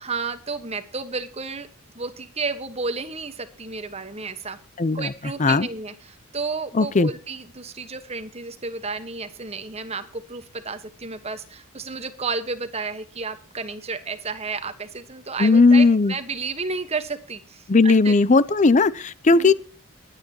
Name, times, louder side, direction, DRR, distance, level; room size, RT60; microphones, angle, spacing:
voice 1, 0.0-1.7 1.9-4.6 4.9-18.1 19.3-19.5, right 4 dB, 30° right, 1.3 m, -32 dB
voice 2, 4.8-5.1 5.4-5.7 6.7-7.1 15.4-16.1 17.7-19.5, left 3 dB, 35° left, 0.5 m, -17 dB
23.0 x 9.2 x 2.9 m
head